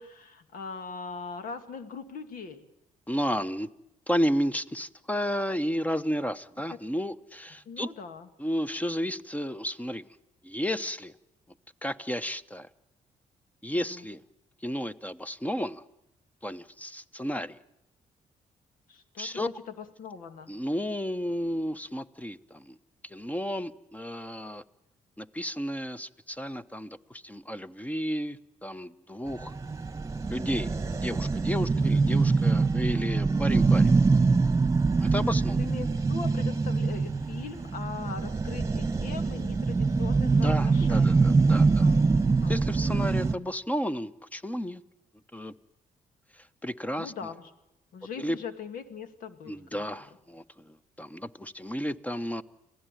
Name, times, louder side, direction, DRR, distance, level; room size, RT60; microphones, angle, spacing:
voice 1, 0.0-2.6 6.7-6.8 7.7-8.3 13.7-14.1 18.9-20.5 31.7-32.0 35.6-41.2 41.8-42.0 42.3-42.6 47.0-47.5 47.9-50.1, left 5 dB, 80° left, 9 dB, 2.2 m, -41 dB
voice 2, 3.1-3.7 4.1-7.9 8.4-10.0 10.4-11.1 11.8-12.7 13.6-14.2 14.6-15.8 16.4-17.5 19.2-19.5 20.5-22.7 23.0-24.6 25.2-29.5 30.3-30.7 31.0-33.9 35.0-35.6 40.3-41.9 42.5-44.8 45.3-45.5 46.6-47.1 48.2-48.4 49.5-52.4, equal, 10° left, 13 dB, 1.0 m, -32 dB
sound 1, 29.3-43.3, right 4 dB, 20° right, 1.4 m, -24 dB
27.0 x 16.5 x 9.2 m, 0.88 s
cardioid pair, 85°, 14 cm